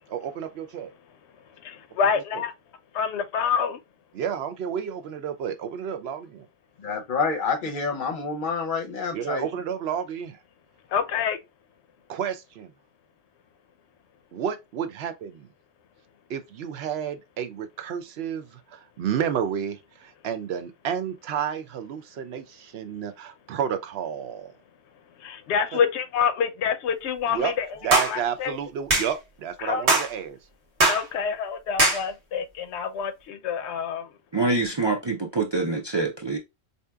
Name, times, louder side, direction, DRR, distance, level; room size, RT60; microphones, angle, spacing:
voice 1, 0.1-0.9 4.1-6.5 9.1-10.4 12.1-12.7 14.3-15.5 16.3-24.5 27.3-27.5 27.8-30.4, right 8 dB, 75° right, 0.8 m, -31 dB
voice 2, 1.6-2.5 2.9-3.8 10.9-11.4 25.2-27.7 28.1-28.6 29.6-29.9 30.9-34.1, left 6 dB, 90° left, 0.9 m, -27 dB
voice 3, 6.8-9.5, left 5 dB, 55° left, 0.8 m, -28 dB
sound 1, 27.9-28.1 28.9-29.1 29.9-30.1 30.8-31.0 31.8-32.0, right 2 dB, 90° right, 1.2 m, -20 dB
voice 4, 34.3-36.4, right 3 dB, 40° right, 0.4 m, -25 dB
4.2 x 2.7 x 2.2 m
omnidirectional pair, 1.1 m